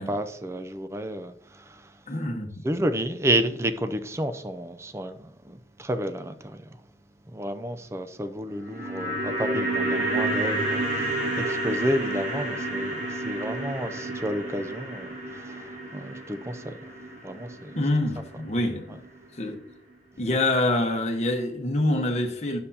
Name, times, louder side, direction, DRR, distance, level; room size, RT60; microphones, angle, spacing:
voice 1, 0.0-1.9 2.6-6.7 7.3-16.8 17.2-17.7, right 1 dB, 15° right, 0.4 m, -31 dB
voice 2, 2.1-2.6 17.7-19.0 19.4-19.6 20.2-22.6, left 1 dB, 40° left, 1.0 m, -26 dB
sound 1, 8.5-18.8 19.0-19.1, right 2 dB, 45° right, 2.7 m, -30 dB
9.6 x 6.8 x 2.8 m
head